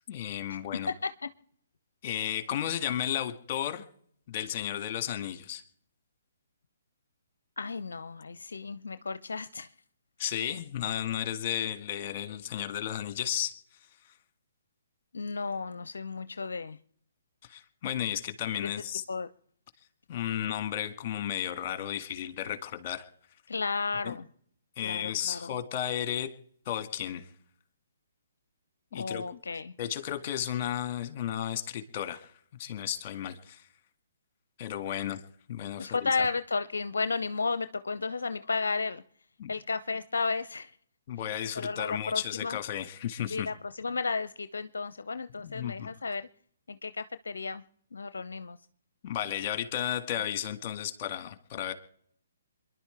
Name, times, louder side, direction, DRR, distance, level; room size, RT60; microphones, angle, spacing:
voice 1, 0.1-0.9 2.0-3.8 4.3-5.6 10.2-13.6 17.4-19.0 20.1-23.1 24.0-24.2 24.8-26.3 26.7-27.3 28.9-29.2 29.8-32.3 32.6-33.7 34.6-35.2 35.5-36.3 39.4-39.5 41.1-43.5 45.4-45.9 49.0-51.7, left 10 dB, 35° left, 9 dB, 2.0 m, -33 dB
voice 2, 0.9-1.3 7.6-9.7 15.1-16.8 18.6-18.7 19.1-19.3 23.5-24.3 24.8-25.5 28.9-29.7 35.8-39.0 39.5-40.7 41.6-42.6 43.3-46.3 46.7-47.6 47.9-48.6, left 4 dB, 70° left, 13 dB, 0.6 m, -33 dB
27.5 x 11.0 x 3.4 m, 0.64 s
figure-of-eight pair, 130°, 0 cm